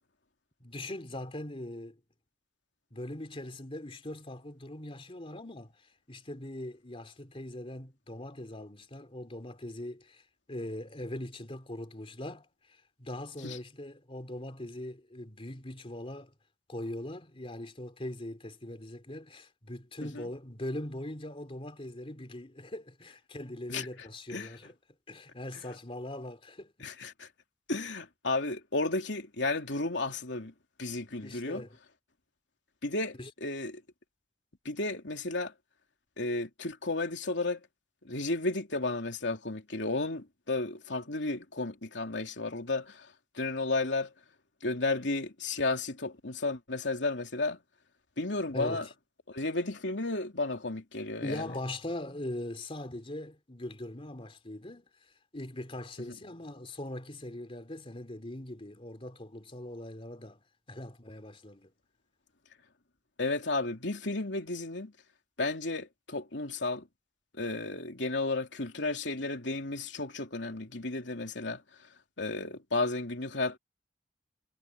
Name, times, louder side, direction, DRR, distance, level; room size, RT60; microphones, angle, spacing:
voice 1, 0.6-2.0 2.9-5.7 6.1-10.2 10.5-16.3 16.7-24.7 25.1-26.7 31.2-31.8 33.2-33.3 48.5-48.9 51.2-54.9 55.3-61.7, left 1 dB, 30° left, 3.1 m, -41 dB
voice 2, 26.8-27.3 27.7-30.5 30.8-31.6 32.8-33.2 33.4-33.8 34.6-35.5 36.2-37.6 38.0-43.1 43.4-44.1 44.6-47.6 48.2-48.9 49.3-51.4 63.2-64.9 65.4-66.8 67.4-71.6 72.2-73.6, left 2 dB, 75° left, 3.1 m, -33 dB
head